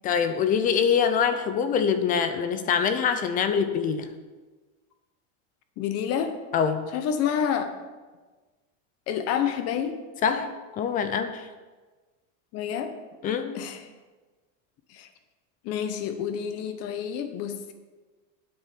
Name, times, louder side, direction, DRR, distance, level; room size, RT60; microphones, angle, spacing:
voice 1, 0.0-4.1 6.5-6.9 10.2-11.5 13.2-13.6, left 7 dB, 25° left, 10 dB, 0.4 m, -24 dB
voice 2, 5.8-6.3 6.9-7.7 9.1-10.0 10.3-10.4 12.5-12.9 13.5-13.9 14.9-15.1 15.6-17.7, left 8 dB, 40° left, 8 dB, 1.0 m, -28 dB
9.5 x 7.8 x 5.1 m, 1.3 s
supercardioid pair, 160°, 37 cm